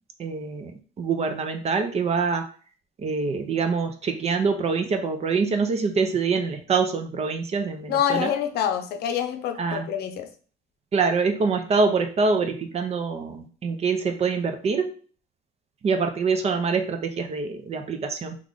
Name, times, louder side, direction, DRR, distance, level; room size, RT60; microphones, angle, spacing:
voice 1, 0.2-0.7 1.0-2.4 3.0-8.3 9.6-9.9 10.9-14.9 15.8-18.4, right 4 dB, 40° right, 0.6 m, -25 dB
voice 2, 7.9-10.3, left 9 dB, 70° left, 0.6 m, -26 dB
3.1 x 2.4 x 3.8 m
cardioid pair, 110°, 17 cm